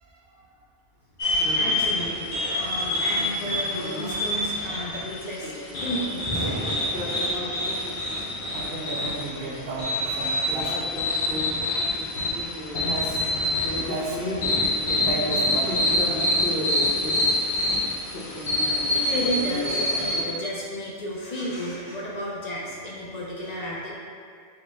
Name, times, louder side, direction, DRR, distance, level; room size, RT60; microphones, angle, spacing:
voice 1, 0.0-0.5 8.5-11.2 12.7-14.2 14.8-15.9 17.7-17.9, right 3 dB, 65° right, -2 dB, 0.8 m, -34 dB
sound 1, 1.2-20.2, left 1 dB, 85° left, 1.2 m, -26 dB
voice 2, 1.3-6.4 18.9-23.9, equal, 50° left, -4 dB, 0.6 m, -32 dB
Thunder, 6.1-20.3, right 1 dB, 10° right, 0.7 m, -42 dB
4.9 x 2.1 x 3.4 m, 2.1 s
omnidirectional pair, 1.1 m